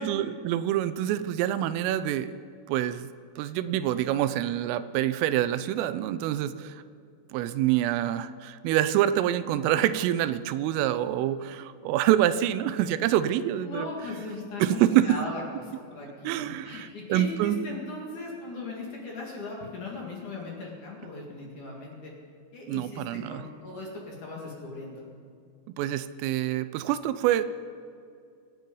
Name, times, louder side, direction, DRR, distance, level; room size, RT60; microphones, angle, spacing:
voice 1, 0.0-2.3 2.7-3.1 3.4-6.8 7.3-13.9 14.6-15.2 16.2-17.6 22.7-23.4 25.8-27.4, right 12 dB, 90° right, 12 dB, 3.2 m, -26 dB
voice 2, 13.6-22.1 22.5-25.0, left 2 dB, 50° left, -2 dB, 2.8 m, -38 dB
25.0 x 9.2 x 5.3 m, 2.4 s
omnidirectional pair, 5.7 m